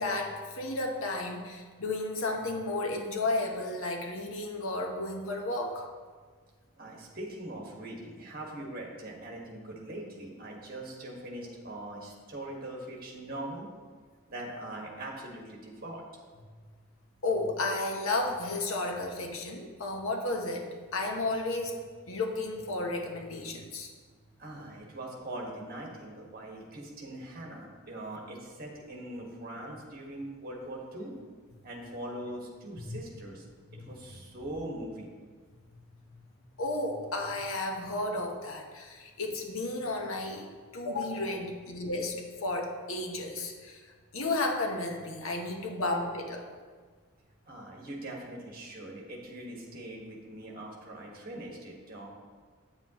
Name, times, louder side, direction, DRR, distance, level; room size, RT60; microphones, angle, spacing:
voice 1, 0.0-5.9 17.2-21.8 22.1-23.9 32.8-33.0 33.7-33.8 36.6-40.5 40.7-43.8 44.1-46.5, left 2 dB, 70° left, 2 dB, 1.0 m, -33 dB
voice 2, 6.8-13.7 14.3-16.0 24.4-31.1 31.6-33.4 33.8-35.1 47.5-52.1, right 1 dB, 40° right, -1 dB, 1.4 m, -41 dB
8.9 x 7.3 x 2.9 m, 1.5 s
head